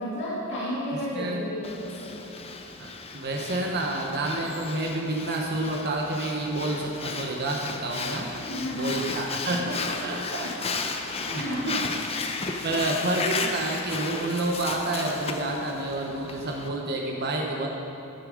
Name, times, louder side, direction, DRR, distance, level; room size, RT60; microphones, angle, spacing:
voice 1, 0.0-2.2 8.2-9.1 9.9-10.4 11.2-11.8 12.2-12.3, equal, 60° left, -8 dB, 2.3 m, -33 dB
voice 2, 0.9-1.4 2.8-8.3 8.7-10.7 11.0-11.9 12.6-17.7, right 2 dB, 50° right, 0 dB, 1.0 m, -29 dB
Breathing, 1.6-16.7, left 4 dB, 30° left, 0.7 m, -34 dB
11.0 x 11.0 x 5.0 m, 2.8 s
head